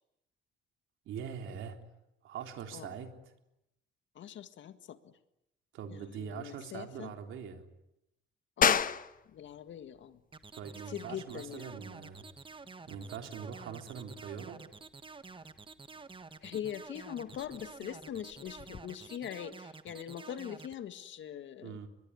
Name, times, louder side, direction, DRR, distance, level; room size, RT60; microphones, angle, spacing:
voice 1, 1.1-1.8 2.2-3.1 5.7-7.6 10.5-12.2 12.9-14.6 21.6-21.9, right 7 dB, 80° right, 5 dB, 3.5 m, -42 dB
voice 2, 4.2-5.1 5.9-7.1 8.6-8.9 9.3-10.2 10.9-11.8 16.4-21.8, left 9 dB, 70° left, 10 dB, 1.9 m, -42 dB
sound 1, 8.6-18.8, left 7 dB, 45° left, 1.2 m, -37 dB
sound 2, 10.3-20.7, right 4 dB, 25° right, 1.4 m, -49 dB
23.5 x 21.5 x 10.0 m, 0.86 s
cardioid pair, 90°, 20 cm